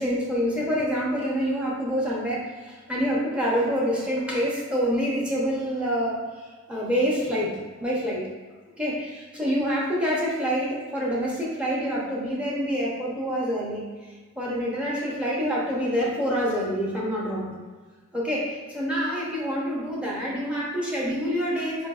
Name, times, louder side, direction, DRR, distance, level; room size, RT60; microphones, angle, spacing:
voice 1, 0.0-6.2 6.7-8.3 8.8-13.9 14.4-17.6 18.1-21.9, equal, 5° right, -6 dB, 0.6 m, -26 dB
4.6 x 2.5 x 2.3 m, 1.4 s
head